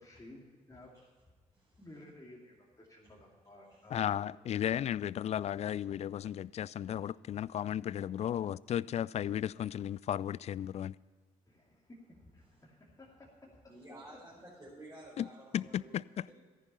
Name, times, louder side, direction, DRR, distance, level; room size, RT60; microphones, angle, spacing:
voice 1, 0.0-1.1 1.8-4.3 11.5-14.2, left 1 dB, 20° left, -2 dB, 2.5 m, -55 dB
voice 2, 3.9-11.0 15.2-15.3 15.5-16.3, left 10 dB, 35° left, 22 dB, 0.4 m, -34 dB
voice 3, 13.7-16.3, right 1 dB, 15° right, -7 dB, 4.9 m, -52 dB
14.5 x 10.5 x 5.5 m, 1.5 s
figure-of-eight pair, 40°, 18 cm